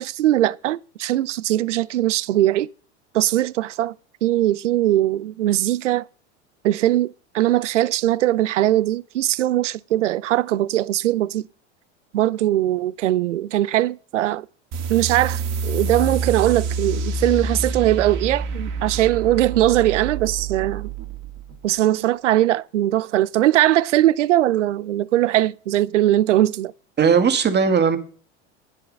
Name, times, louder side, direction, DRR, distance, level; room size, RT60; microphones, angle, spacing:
voice 1, 0.0-2.7 3.1-3.9 4.2-6.0 6.6-11.5 12.1-14.5 14.9-20.9 21.6-26.7, right 14 dB, 85° right, 0.5 m, -20 dB
sound 1, 14.7-21.8, right 4 dB, 50° right, 2.3 m, -27 dB
voice 2, 27.0-28.0, right 6 dB, 30° right, 2.0 m, -17 dB
9.8 x 9.8 x 5.3 m
hypercardioid pair, 90°, 35 cm